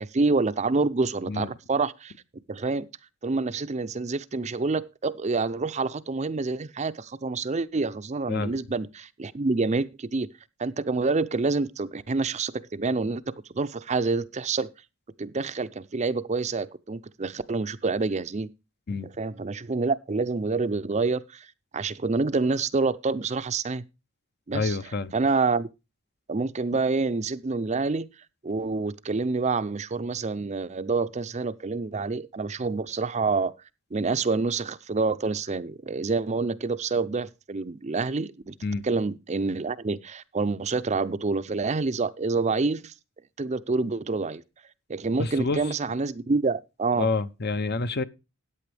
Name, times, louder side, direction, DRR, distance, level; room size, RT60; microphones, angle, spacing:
voice 1, 0.0-2.1 2.5-2.9 3.2-10.3 10.6-14.7 15.2-18.5 19.0-21.5 21.7-23.8 24.5-24.8 25.1-25.7 26.3-28.1 28.4-33.5 33.9-38.5 38.8-42.9 43.4-44.4 44.9-47.1, right 3 dB, 30° right, 0.5 m, -27 dB
voice 2, 24.5-25.1 38.6-38.8 45.2-45.6 47.0-48.0, left 3 dB, 45° left, 0.7 m, -28 dB
14.0 x 9.4 x 3.4 m
head